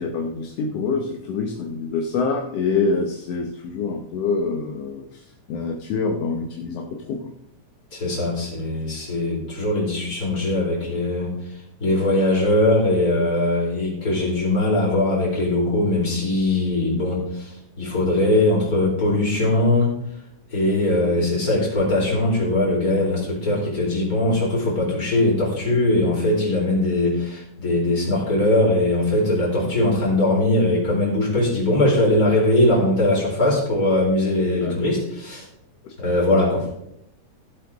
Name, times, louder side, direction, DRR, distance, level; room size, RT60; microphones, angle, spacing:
voice 1, 0.0-5.2 5.5-7.3 34.6-34.7 35.8-35.9, left 4 dB, 65° left, 2 dB, 1.8 m, -26 dB
voice 2, 7.9-11.3 11.8-19.9 20.5-35.5 36.0-36.7, left 1 dB, 25° left, -3 dB, 4.3 m, -21 dB
16.0 x 7.9 x 3.7 m, 0.77 s
omnidirectional pair, 3.7 m